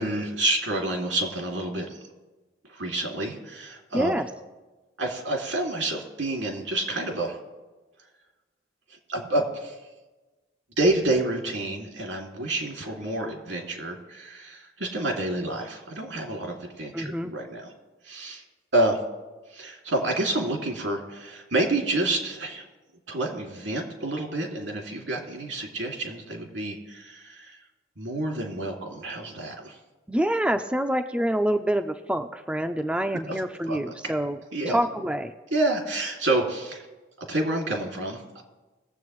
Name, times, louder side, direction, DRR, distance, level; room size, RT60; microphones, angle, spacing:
voice 1, 0.0-2.0 2.7-4.1 5.0-7.4 9.1-9.8 10.8-17.7 18.0-18.4 18.7-19.0 19.5-22.6 23.1-27.6 28.0-29.8 33.3-33.4 33.7-33.8 34.5-34.8 35.5-36.8 37.3-38.4, right 2 dB, 85° right, 0 dB, 2.4 m, -28 dB
voice 2, 3.9-4.3 16.9-17.3 30.1-34.4 34.7-35.3, right 1 dB, 5° right, 7 dB, 0.4 m, -26 dB
20.5 x 7.8 x 3.1 m, 1.2 s
head